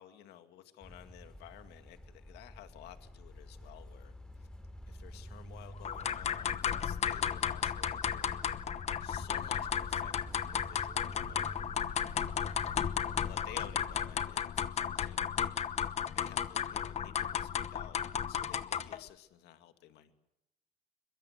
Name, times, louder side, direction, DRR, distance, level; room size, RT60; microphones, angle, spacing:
voice 1, 0.0-4.5 4.9-8.5 9.0-10.1 10.4-11.5 12.4-12.8 13.3-15.5 16.1-18.0 18.3-20.1, left 12 dB, 80° left, 8 dB, 2.3 m, -54 dB
sound 1, 0.8-14.2, equal, 5° left, 2.9 m, -48 dB
sound 2, 5.8-19.0, left 8 dB, 40° left, 1.0 m, -34 dB
23.0 x 22.0 x 8.0 m, 0.89 s
cardioid pair, 125°, 17 cm